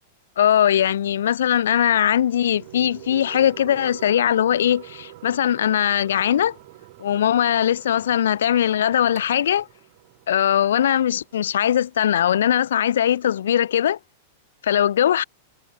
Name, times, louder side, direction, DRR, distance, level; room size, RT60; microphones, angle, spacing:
voice 1, 0.4-6.6 7.0-9.7 10.3-14.0 14.6-15.2, left 10 dB, 75° left, 0.4 m, -20 dB
sound 1, 1.5-12.6, right 14 dB, 40° right, 3.9 m, -56 dB
sound 2, 1.7-12.7, right 16 dB, 60° right, 1.1 m, -46 dB
hypercardioid pair, 100°, 0 cm